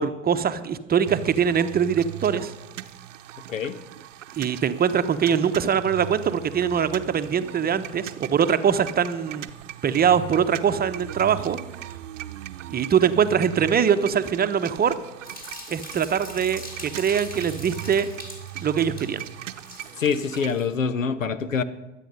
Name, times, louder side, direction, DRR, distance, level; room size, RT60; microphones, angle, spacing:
voice 1, 0.0-2.5 4.4-9.4 9.8-11.6 12.7-14.9 15.7-18.1 18.6-19.2, right 7 dB, 25° right, 11 dB, 0.9 m, -22 dB
sound 1, 1.0-20.5, right 13 dB, 75° right, 0.8 m, -39 dB
sound 2, 15.2-20.7, left 1 dB, 25° left, 4.0 m, -42 dB
voice 2, 20.0-21.6, left 6 dB, 85° left, 16 dB, 0.9 m, -25 dB
22.0 x 8.5 x 5.4 m, 1.0 s
figure-of-eight pair, 80°, 38 cm